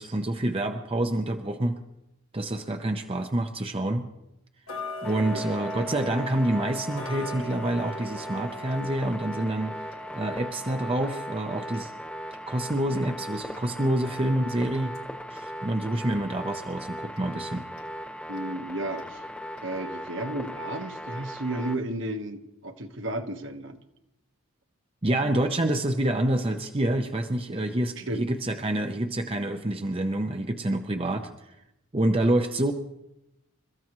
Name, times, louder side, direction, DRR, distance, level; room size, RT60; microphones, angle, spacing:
voice 1, 0.0-1.8 2.3-4.1 5.0-9.7 10.1-11.9 12.5-14.9 15.3-17.6 25.0-31.5 31.9-32.7, right 1 dB, 25° right, 5 dB, 0.7 m, -27 dB
Tick-tock, 4.7-15.5 15.9-16.0 16.6-16.7 17.2-17.3 17.8-17.9 18.4-18.5 19.0-19.1 19.6-19.7, left 2 dB, 75° left, 1.6 m, -41 dB
sound 1, 5.0-21.8, equal, 5° left, 1.2 m, -38 dB
voice 2, 18.3-19.2 19.6-23.8 28.0-28.3, right 1 dB, 60° right, 6 dB, 1.3 m, -33 dB
29.0 x 14.5 x 3.1 m, 0.89 s
head